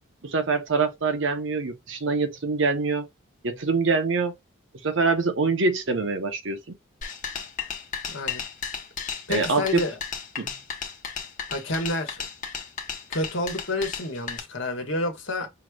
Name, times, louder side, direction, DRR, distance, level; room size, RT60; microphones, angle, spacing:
voice 1, 0.2-3.1 3.4-4.4 4.8-6.8 9.3-9.8 10.4-10.5, right 4 dB, 65° right, 0.8 m, -25 dB
sound 1, 7.0-14.4, left 7 dB, 40° left, 0.9 m, -34 dB
voice 2, 8.1-8.4 9.3-10.0 11.5-12.3 13.1-15.5, left 1 dB, 65° left, 1.3 m, -29 dB
5.6 x 3.2 x 2.3 m
head